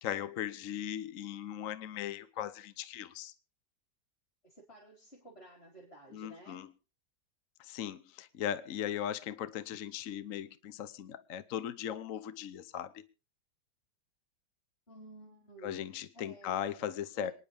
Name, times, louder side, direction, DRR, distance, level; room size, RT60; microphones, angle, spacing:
voice 1, 0.0-3.3 6.1-6.7 7.6-13.0 15.6-17.3, left 10 dB, 55° left, 1.0 m, -38 dB
voice 2, 4.4-6.7 14.9-15.8 16.1-17.3, right 1 dB, 30° left, 4.4 m, -54 dB
27.0 x 10.0 x 3.4 m
omnidirectional pair, 2.0 m